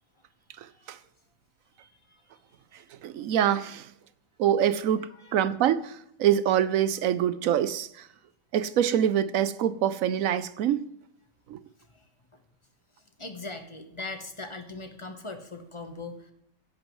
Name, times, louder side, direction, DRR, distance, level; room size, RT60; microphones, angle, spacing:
voice 1, 0.6-1.0 2.7-3.9 4.4-8.1 8.5-10.9 11.5-11.6, right 10 dB, 70° right, 0.8 m, -25 dB
voice 2, 1.8-2.2 5.1-5.5 11.9-12.0 13.2-16.3, left 3 dB, 20° left, 1.0 m, -40 dB
16.0 x 10.5 x 3.1 m
omnidirectional pair, 1.9 m